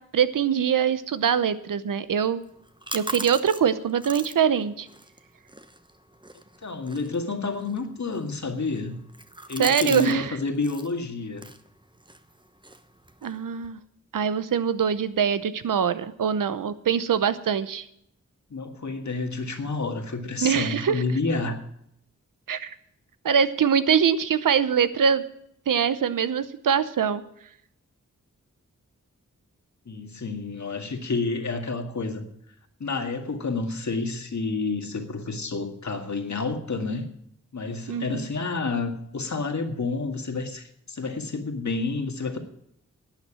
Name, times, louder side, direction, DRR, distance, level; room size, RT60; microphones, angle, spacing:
voice 1, 0.1-2.4 2.9-4.9 9.6-10.3 13.2-13.8 14.1-17.9 20.4-21.0 22.5-22.7 23.2-25.2 25.7-27.2 37.9-38.3, right 7 dB, 90° right, 14 dB, 0.8 m, -23 dB
sound 1, 2.4-10.2 10.4-10.9 11.3-13.7, right 2 dB, 15° right, 1.0 m, -41 dB
voice 2, 6.6-9.0 9.5-11.5 18.5-21.6 29.9-32.2 32.8-37.0 37.5-42.4, left 3 dB, 65° left, 5 dB, 1.9 m, -29 dB
12.0 x 8.2 x 8.6 m, 0.74 s
cardioid pair, 45°, 31 cm